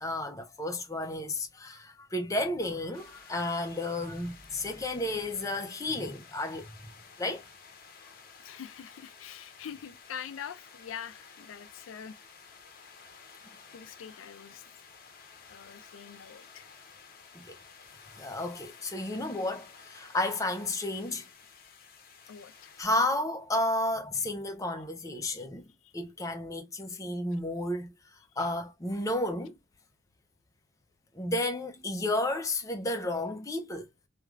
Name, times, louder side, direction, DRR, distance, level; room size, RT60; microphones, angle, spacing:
voice 1, 0.0-6.7 7.2-7.4 17.4-17.5 18.2-21.3 22.8-25.7 25.9-27.9 28.4-29.6 31.1-33.9, left 1 dB, 15° left, 0.5 m, -32 dB
sound 1, 2.9-22.8, left 5 dB, 50° left, 0.7 m, -53 dB
voice 2, 8.4-12.2 13.7-14.7 15.5-16.7 22.3-22.7 25.2-25.4 25.8-25.9 28.3-28.5, left 8 dB, 85° left, 0.4 m, -44 dB
3.1 x 2.3 x 2.3 m
head